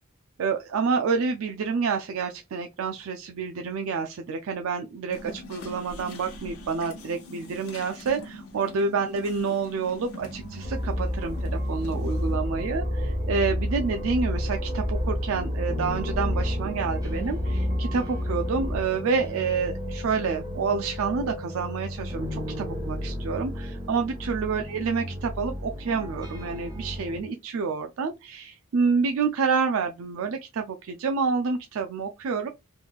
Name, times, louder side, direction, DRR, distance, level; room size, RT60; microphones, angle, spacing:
voice 1, 0.4-32.5, right 5 dB, 70° right, 0.4 m, -28 dB
sound 1, 5.1-12.4, left 1 dB, 85° left, 1.1 m, -43 dB
sound 2, 10.2-27.2, equal, 15° right, 0.9 m, -35 dB
The Chase, 10.6-18.8, left 1 dB, 35° left, 1.1 m, -29 dB
3.4 x 3.1 x 2.3 m
head